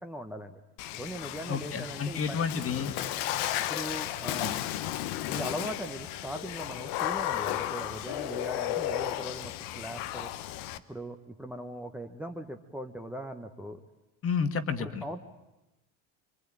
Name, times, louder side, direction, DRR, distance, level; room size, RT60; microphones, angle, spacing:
voice 1, 0.0-0.6 0.9-2.4 3.7-4.5 5.3-10.3 10.9-13.8 14.8-15.2, equal, 5° right, 3 dB, 1.1 m, -39 dB
Water / Splash splatter, 0.8-10.8, left 13 dB, 80° left, 1.2 m, -34 dB
voice 2, 1.5-2.9 4.4-4.6 14.2-15.0, left 5 dB, 35° left, 8 dB, 1.9 m, -31 dB
25.0 x 24.0 x 9.0 m, 0.97 s
cardioid pair, 115°, 39 cm